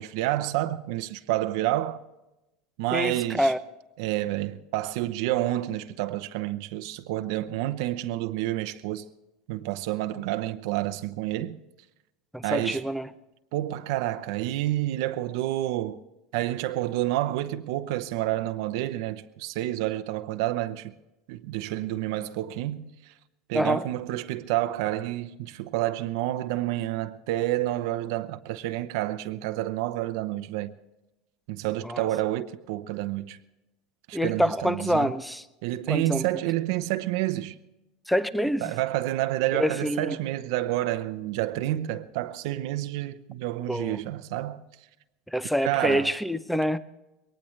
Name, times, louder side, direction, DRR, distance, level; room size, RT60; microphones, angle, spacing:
voice 1, 0.0-2.0 2.8-3.5 4.0-9.0 9.5-11.6 12.4-12.8 13.5-16.0 16.3-20.9 21.3-23.1 23.5-30.7 31.5-33.4 34.1-35.1 35.6-37.5 38.6-44.6 45.6-46.1, right 15 dB, 65° right, 0.8 m, -29 dB
voice 2, 2.9-3.6 12.3-13.1 23.5-23.8 31.8-32.0 34.1-35.4 35.9-36.2 38.1-38.7 39.5-40.2 43.7-44.0 45.3-46.8, equal, ahead, 0.6 m, -26 dB
22.5 x 19.0 x 3.3 m
supercardioid pair, 160°, 3 cm